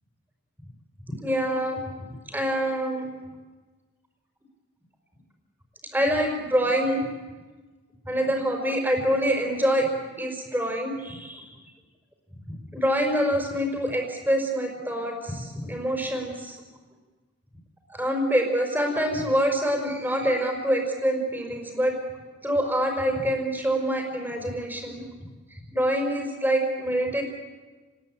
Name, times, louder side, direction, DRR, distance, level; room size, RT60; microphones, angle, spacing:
voice 1, 1.2-1.8 2.1-3.1 5.9-7.1 8.0-9.9 10.2-11.5 12.7-16.6 17.9-22.0 22.4-27.2, equal, 10° right, 3 dB, 4.8 m, -26 dB
29.5 x 21.0 x 8.9 m, 1.3 s
head